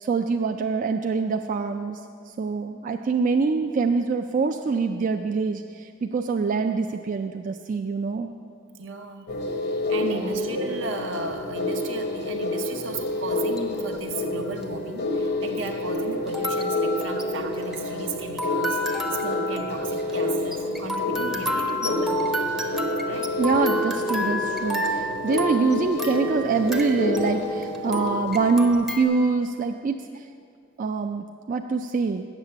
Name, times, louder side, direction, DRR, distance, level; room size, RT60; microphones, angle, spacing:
voice 1, 0.0-2.0 2.4-8.3 10.0-10.4 23.4-30.0 30.8-32.3, right 4 dB, 40° right, 5 dB, 0.3 m, -25 dB
voice 2, 8.8-9.3 9.9-22.5 23.1-23.3, right 3 dB, 75° right, 5 dB, 0.8 m, -35 dB
sound 1, 9.3-28.7, left 2 dB, 55° left, 0.8 m, -29 dB
sound 2, 13.3-13.8 14.6-14.7 16.3-29.0, left 1 dB, 5° right, 0.6 m, -31 dB
8.1 x 7.2 x 6.8 m, 2.2 s
head